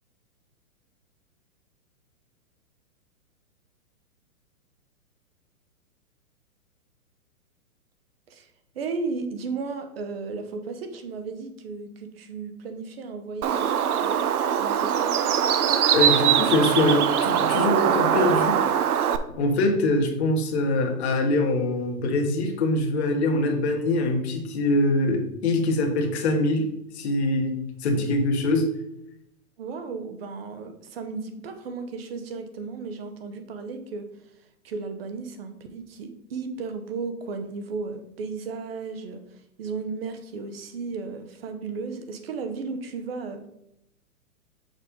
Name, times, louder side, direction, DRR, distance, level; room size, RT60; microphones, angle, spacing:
voice 1, 8.3-14.3 14.6-15.3 29.6-34.0 34.6-43.4, right 4 dB, 40° right, 7 dB, 0.9 m, -34 dB
Bird, 13.4-19.2, right 9 dB, 80° right, 0.7 m, -22 dB
voice 2, 15.9-18.6 19.3-26.7 26.9-28.7, left 2 dB, 45° left, 3 dB, 1.3 m, -23 dB
6.5 x 5.0 x 3.7 m, 0.80 s
hypercardioid pair, 165°, 44 cm